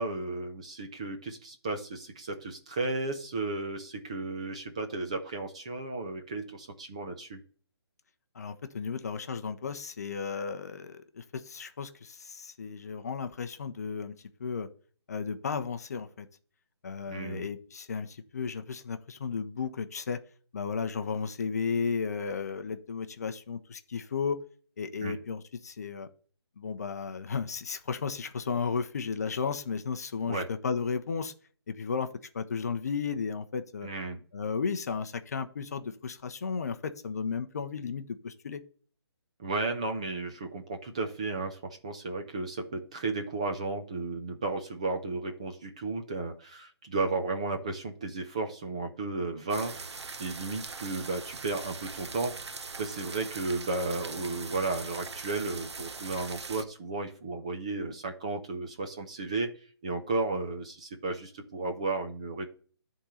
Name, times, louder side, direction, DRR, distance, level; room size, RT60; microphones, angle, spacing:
voice 1, 0.0-7.4 17.1-17.5 25.0-25.2 30.3-30.5 33.8-34.2 39.4-49.7 50.2-59.5 59.8-62.5, right 3 dB, 15° right, 4 dB, 0.4 m, -34 dB
voice 2, 8.3-14.1 14.4-14.7 15.1-16.3 16.8-20.2 20.5-24.4 24.8-26.1 26.6-31.3 31.7-33.9 34.3-38.6, left 5 dB, 40° left, 8 dB, 0.7 m, -34 dB
sound 1, 49.5-56.6, right 4 dB, 80° right, 0.9 m, -41 dB
10.0 x 3.7 x 5.6 m, 0.42 s
hypercardioid pair, 170°, 14 cm